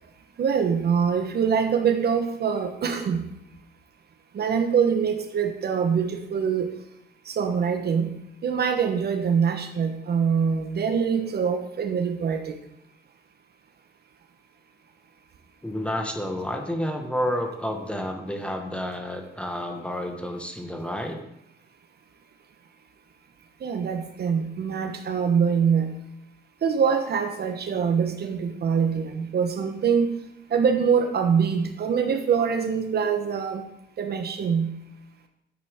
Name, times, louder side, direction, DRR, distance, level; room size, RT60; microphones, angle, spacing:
voice 1, 0.4-3.3 4.3-6.7 7.3-8.2 8.4-12.5 23.6-25.9 26.6-30.1 30.5-33.7 34.0-34.7, right 6 dB, 55° right, 6 dB, 1.1 m, -24 dB
voice 2, 15.6-21.2, equal, 5° left, 4 dB, 1.5 m, -30 dB
10.0 x 8.3 x 3.7 m, 0.80 s
cardioid pair, 90°, 20 cm